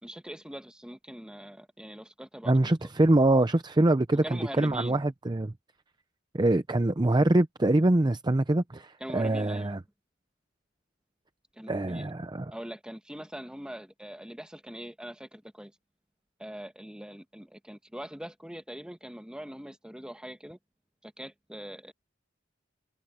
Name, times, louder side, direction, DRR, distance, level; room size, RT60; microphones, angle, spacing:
voice 1, 0.0-2.7 4.1-5.1 9.0-9.8 11.5-12.1 12.5-15.7 16.4-20.6 21.0-21.9, equal, 5° right, 1.6 m, -42 dB
voice 2, 2.5-5.5 6.3-9.8 11.7-12.4, right 2 dB, 20° right, 0.6 m, -24 dB
head